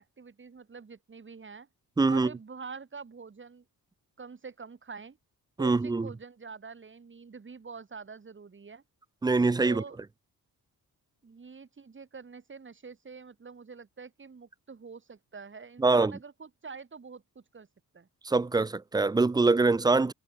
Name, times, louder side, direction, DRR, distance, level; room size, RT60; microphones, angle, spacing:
voice 1, 0.0-1.7 2.1-3.6 4.2-5.2 5.6-8.8 9.6-10.0 11.2-17.7 17.9-18.1, right 5 dB, 35° right, 3.8 m, -46 dB
voice 2, 2.0-2.3 5.6-6.1 9.2-9.8 15.8-16.1 18.2-20.1, right 3 dB, 10° right, 0.4 m, -24 dB
cardioid pair, 115°, 36 cm